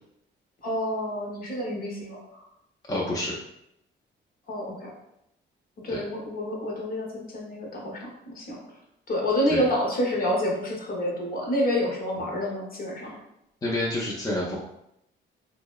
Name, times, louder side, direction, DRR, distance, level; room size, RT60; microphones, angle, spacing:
voice 1, 0.6-2.4 4.5-4.9 5.8-8.0 8.3-8.6 9.1-13.2, equal, 50° left, -2 dB, 0.8 m, -28 dB
voice 2, 2.9-3.3 5.9-6.0 9.5-9.6 13.6-14.6, left 1 dB, 20° left, -4 dB, 0.5 m, -28 dB
2.6 x 2.0 x 2.3 m, 0.81 s
cardioid pair, 90°, 20 cm